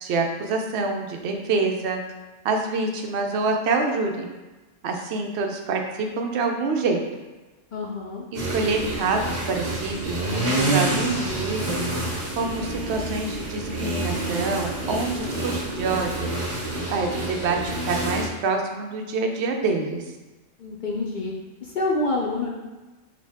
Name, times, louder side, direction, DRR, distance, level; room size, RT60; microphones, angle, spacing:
voice 1, 0.0-2.0 2.4-4.3 4.8-7.0 8.3-11.8 12.4-16.3 16.9-20.0, right 3 dB, 65° right, 3 dB, 0.8 m, -26 dB
voice 2, 7.7-8.2 20.6-21.3 21.6-22.5, left 2 dB, 65° left, -2 dB, 0.4 m, -27 dB
sound 1, 8.3-18.3, right 1 dB, 50° right, 1.2 m, -28 dB
5.0 x 2.2 x 3.4 m, 1.2 s
omnidirectional pair, 1.3 m